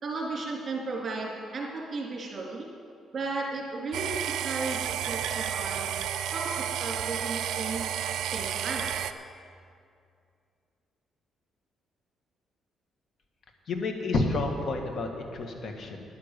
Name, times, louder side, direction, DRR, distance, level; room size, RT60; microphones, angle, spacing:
voice 1, 0.0-2.7 3.1-7.8 8.1-9.0, right 3 dB, 40° right, -2 dB, 3.3 m, -35 dB
sound 1, 3.9-9.1, right 10 dB, 75° right, 0.5 m, -31 dB
voice 2, 13.7-16.0, left 2 dB, 55° left, 3 dB, 1.7 m, -30 dB
10.5 x 9.9 x 6.8 m, 2.4 s
cardioid pair, 90°, 0 cm